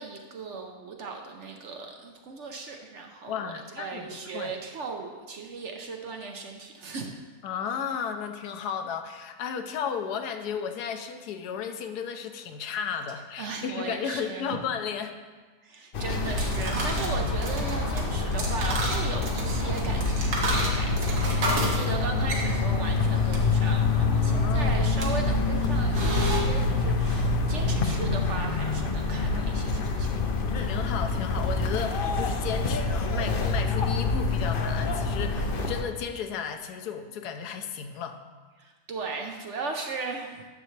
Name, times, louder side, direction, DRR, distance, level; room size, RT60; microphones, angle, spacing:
voice 1, 0.0-7.1 13.4-14.6 15.6-30.2 38.6-40.5, right 4 dB, 60° right, 3 dB, 0.9 m, -37 dB
voice 2, 3.3-4.5 7.4-15.1 24.1-24.9 30.6-38.2, left 7 dB, 85° left, 7 dB, 1.2 m, -34 dB
sound 1, 15.9-35.8, left 3 dB, 50° left, 0.6 m, -26 dB
sound 2, 16.1-26.4, right 1 dB, 75° right, 1.9 m, -33 dB
11.0 x 6.7 x 3.2 m, 1.4 s
omnidirectional pair, 1.7 m